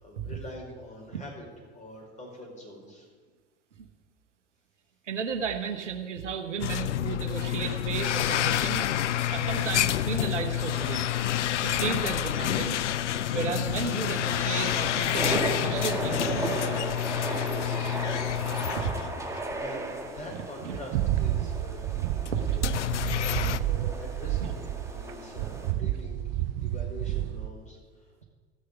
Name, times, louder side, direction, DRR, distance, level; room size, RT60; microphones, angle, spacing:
voice 1, 0.0-1.4 1.7-3.1 18.1-19.1 19.3-22.6 23.1-26.2 26.6-28.2, left 1 dB, 20° left, -1 dB, 5.0 m, -45 dB
voice 2, 5.0-11.0 11.6-12.8 13.3-16.8 20.3-20.8 22.3-22.4 24.4-24.5, right 6 dB, 80° right, 6 dB, 1.2 m, -34 dB
sound 1, 6.6-19.7 20.1-20.2 21.0-21.1 22.2-23.6, left 12 dB, 80° left, 0.5 m, -28 dB
sound 2, 8.8-25.7, right 2 dB, 10° right, 1.8 m, -37 dB
sound 3, 20.9-25.1 25.4-27.5, right 13 dB, 55° right, 0.6 m, -30 dB
15.0 x 6.5 x 8.0 m, 1.5 s
figure-of-eight pair, 80°, 35 cm